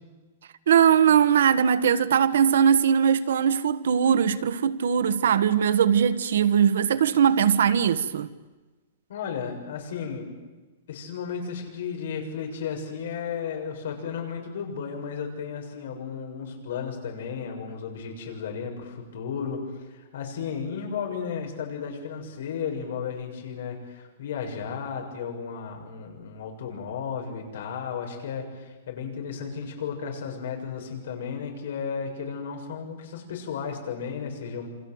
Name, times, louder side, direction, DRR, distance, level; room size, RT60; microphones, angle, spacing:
voice 1, 0.7-8.3, right 8 dB, 75° right, 1.4 m, -20 dB
voice 2, 9.1-10.3 10.9-34.7, left 6 dB, 60° left, 7.0 m, -34 dB
28.5 x 26.0 x 8.0 m
supercardioid pair, 180°, 0 cm